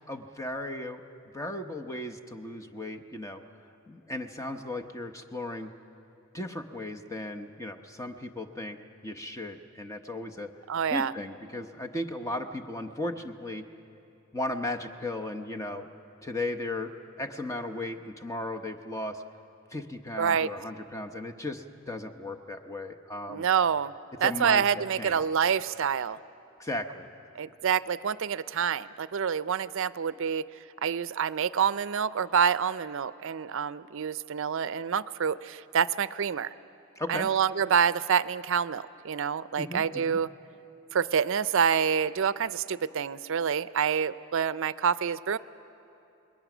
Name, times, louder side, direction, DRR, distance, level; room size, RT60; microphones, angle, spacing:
voice 1, 0.1-1.0 1.3-3.4 3.9-5.7 6.3-8.8 9.0-10.5 10.9-13.7 14.3-15.9 16.2-19.2 19.7-23.4 24.2-24.6 25.0-25.2 26.6-27.1 37.0-37.3 39.6-40.2, left 1 dB, 15° left, 5 dB, 0.8 m, -36 dB
voice 2, 10.7-11.1 20.2-20.5 23.3-23.9 24.2-26.2 27.4-30.4 30.8-36.5 37.1-40.3 40.9-45.4, right 7 dB, 65° right, 16 dB, 0.5 m, -27 dB
28.0 x 21.0 x 6.1 m, 2.9 s
head